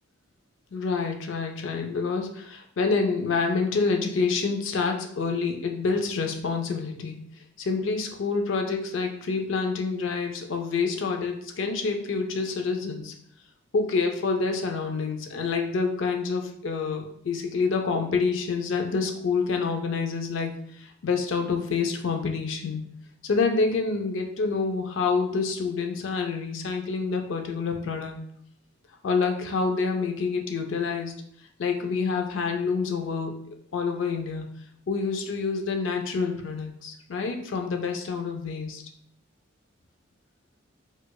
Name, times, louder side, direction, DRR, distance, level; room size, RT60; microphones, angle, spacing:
voice 1, 0.7-7.2 7.6-13.1 13.7-22.8 23.2-28.2 29.0-31.1 31.6-33.3 33.7-34.5 34.9-38.8, left 4 dB, 65° left, 4 dB, 0.4 m, -27 dB
4.5 x 2.4 x 2.3 m, 0.68 s
head